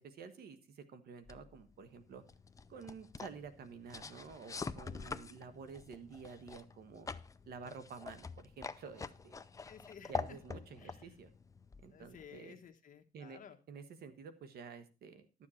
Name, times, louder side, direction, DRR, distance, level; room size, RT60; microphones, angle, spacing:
voice 1, 0.0-2.2 2.7-7.1 7.5-9.4 10.1-11.3 11.8-12.6 13.1-13.4 13.7-15.5, right 5 dB, 70° right, 11 dB, 1.3 m, -50 dB
sound 1, 1.2-12.4, left 4 dB, 20° left, 0.5 m, -46 dB
voice 2, 4.9-5.2 9.7-10.4 10.8-11.2 11.9-13.6, left 7 dB, 50° left, 6 dB, 1.3 m, -55 dB
12.0 x 7.4 x 4.3 m, 0.32 s
cardioid pair, 115°, 17 cm